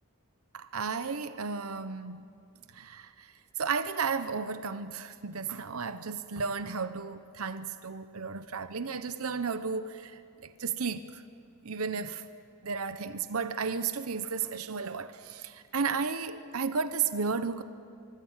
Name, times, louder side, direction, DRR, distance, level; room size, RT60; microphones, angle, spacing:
voice 1, 0.5-2.3 2.7-3.3 3.6-11.2 11.6-12.2 12.6-17.6, right 5 dB, 80° right, 0.9 m, -33 dB
24.5 x 23.5 x 7.4 m
head